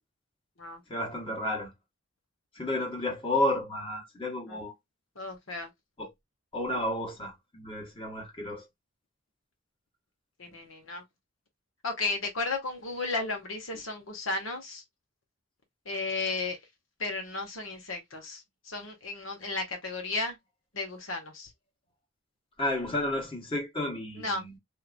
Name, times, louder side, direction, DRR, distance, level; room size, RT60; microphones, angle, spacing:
voice 1, 0.9-1.7 2.5-4.7 6.0-6.1 6.5-8.6 22.6-24.6, left 1 dB, 25° left, 1.2 m, -32 dB
voice 2, 5.2-5.7 10.4-11.0 11.8-14.8 15.8-16.6 17.0-20.4 20.7-21.5 24.1-24.4, left 3 dB, 70° left, 1.3 m, -34 dB
3.3 x 2.8 x 2.4 m
head